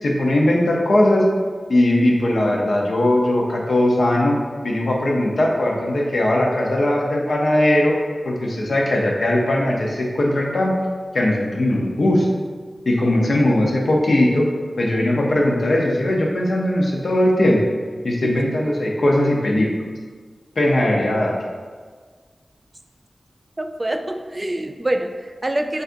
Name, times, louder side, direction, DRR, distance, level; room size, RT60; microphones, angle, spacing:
voice 1, 0.0-1.3 1.7-4.4 4.6-7.9 8.3-10.7 11.1-12.3 12.9-14.5 14.8-17.6 18.0-19.7 20.6-21.3, left 1 dB, 75° left, -1 dB, 0.7 m, -19 dB
voice 2, 23.6-25.8, right 1 dB, 30° right, 5 dB, 0.3 m, -25 dB
6.4 x 2.4 x 2.5 m, 1.5 s
wide cardioid pair, 70°, 0 cm